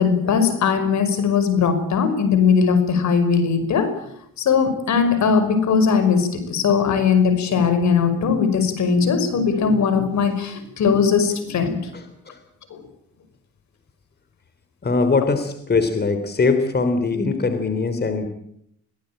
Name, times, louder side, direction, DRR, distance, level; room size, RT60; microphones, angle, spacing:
voice 1, 0.0-4.0 4.4-11.8 12.7-12.8, left 6 dB, 70° left, 10 dB, 5.7 m, -19 dB
voice 2, 14.8-18.3, left 4 dB, 35° left, 8 dB, 3.4 m, -21 dB
23.5 x 18.0 x 9.0 m, 0.73 s
cardioid pair, 90°, 30 cm